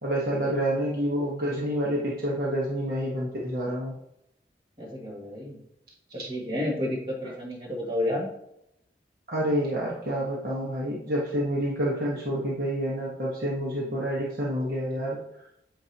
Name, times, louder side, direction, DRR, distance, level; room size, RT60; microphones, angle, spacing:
voice 1, 0.0-3.9 9.3-15.2, equal, 55° right, -4 dB, 1.3 m, -28 dB
voice 2, 4.8-5.6 6.3-8.3 13.8-14.0, left 1 dB, 30° right, -4 dB, 2.0 m, -31 dB
8.6 x 5.2 x 2.9 m, 0.78 s
head